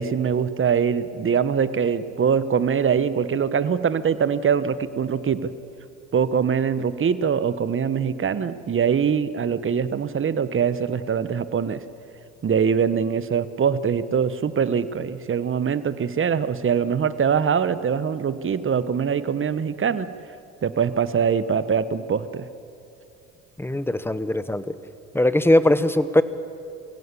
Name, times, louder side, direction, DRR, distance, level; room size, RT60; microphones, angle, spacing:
voice 1, 0.0-5.5 6.1-11.8 12.4-20.1 20.6-22.5, right 7 dB, 35° right, 14 dB, 1.2 m, -23 dB
voice 2, 23.6-24.6 25.1-26.2, left 1 dB, 5° left, 14 dB, 1.2 m, -20 dB
23.5 x 16.5 x 8.4 m, 2.6 s
hypercardioid pair, 65°, 36 cm